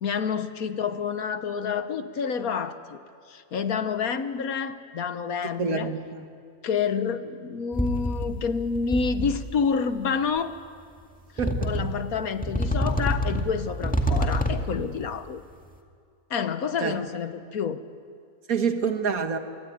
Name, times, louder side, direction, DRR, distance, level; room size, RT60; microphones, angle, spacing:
voice 1, 0.0-3.0 3.3-5.9 6.6-10.5 11.6-15.4 16.3-17.8, left 6 dB, 70° left, 10 dB, 1.6 m, -28 dB
voice 2, 5.6-6.3 11.4-11.9 16.8-17.0 18.5-19.4, right 5 dB, 65° right, 7 dB, 2.0 m, -27 dB
sound 1, 7.7-8.5 8.8-9.5 10.4-10.5 11.4-12.1 12.4-14.8, equal, 5° left, 2.0 m, -27 dB
26.5 x 23.0 x 9.3 m, 2.3 s
omnidirectional pair, 1.6 m